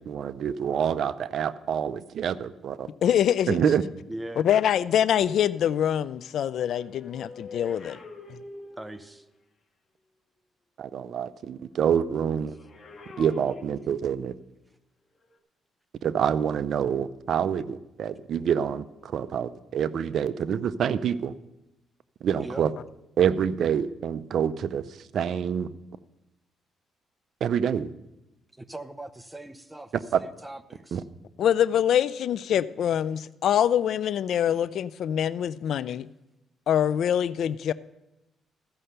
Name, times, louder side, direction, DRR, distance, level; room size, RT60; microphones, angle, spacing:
voice 1, 0.0-2.9 3.5-3.8 10.8-12.6 13.2-14.3 16.0-21.3 22.2-22.7 23.2-24.8 25.1-25.7 27.4-27.9 30.1-30.2 30.9-31.0, right 8 dB, 65° right, 14 dB, 0.5 m, -26 dB
voice 2, 3.0-3.6 4.4-8.0 31.4-36.1 36.7-37.7, left 9 dB, 70° left, 16 dB, 0.4 m, -24 dB
voice 3, 4.1-4.4 8.8-9.3 22.4-22.7 28.6-31.0, right 1 dB, 10° right, 11 dB, 0.8 m, -40 dB
sound 1, 6.5-9.2 12.4-14.3 15.2-15.4, left 2 dB, 35° left, 1.8 m, -45 dB
14.0 x 5.6 x 6.6 m, 0.92 s
cardioid pair, 90°, 0 cm